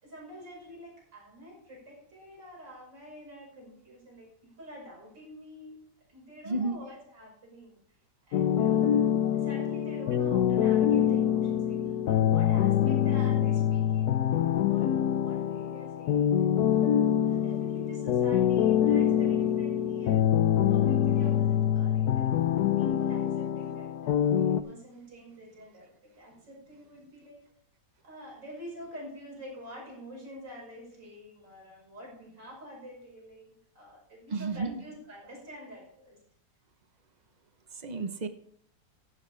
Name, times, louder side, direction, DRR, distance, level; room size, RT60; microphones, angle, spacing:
voice 1, 0.0-7.8 8.3-8.9 9.2-16.5 17.3-20.4 20.7-22.4 22.8-27.5 28.0-36.2, equal, 85° right, -2 dB, 6.3 m, -47 dB
voice 2, 6.5-6.8 34.3-34.8 37.8-38.3, right 3 dB, 35° right, 9 dB, 0.8 m, -31 dB
sound 1, 8.3-24.6, left 10 dB, 70° left, 1.1 m, -25 dB
14.5 x 11.0 x 3.3 m, 0.62 s
omnidirectional pair, 1.9 m